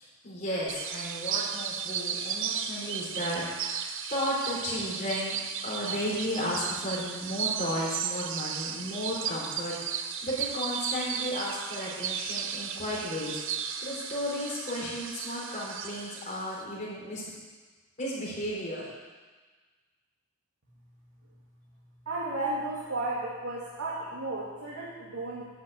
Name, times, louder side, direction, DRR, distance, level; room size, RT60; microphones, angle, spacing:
voice 1, 0.2-5.4 5.6-13.4 13.8-17.2 18.0-18.9, equal, 35° left, -5 dB, 3.9 m, -34 dB
sound 1, 0.7-16.6, right 7 dB, 60° right, 0.7 m, -35 dB
voice 2, 22.1-25.5, right 2 dB, 80° right, -6 dB, 2.1 m, -33 dB
11.0 x 6.0 x 8.8 m, 1.4 s
head